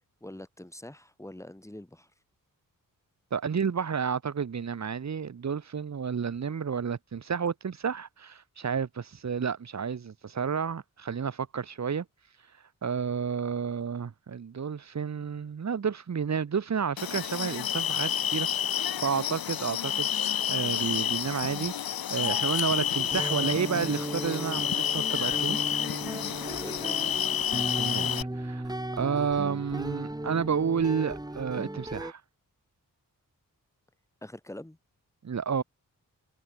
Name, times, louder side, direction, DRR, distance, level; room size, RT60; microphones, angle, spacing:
voice 1, 0.2-2.1 26.6-27.2 34.2-34.8, left 1 dB, 10° left, 4.6 m, -44 dB
voice 2, 3.3-12.0 12.8-20.1 20.5-25.7 27.7-32.2 35.2-35.6, right 6 dB, 50° right, 1.5 m, -31 dB
sound 1, 17.0-28.2, left 9 dB, 85° left, 1.4 m, -29 dB
sound 2, 23.0-32.1, right 1 dB, 10° right, 3.5 m, -36 dB
wide cardioid pair, 85°, 34 cm